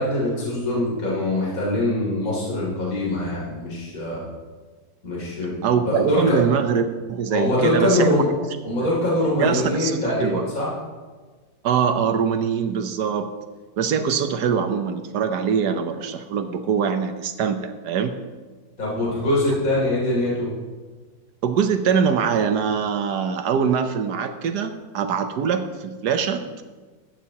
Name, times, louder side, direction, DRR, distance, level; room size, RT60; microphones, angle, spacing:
voice 1, 0.0-4.2 5.0-6.4 7.3-8.2 8.6-10.7 18.8-20.5, left 1 dB, 45° left, -6 dB, 3.6 m, -23 dB
voice 2, 5.6-8.1 9.4-10.5 11.6-13.3 13.8-18.1 21.4-26.6, right 7 dB, 65° right, 8 dB, 1.3 m, -23 dB
15.0 x 11.5 x 2.9 m, 1.4 s
omnidirectional pair, 2.0 m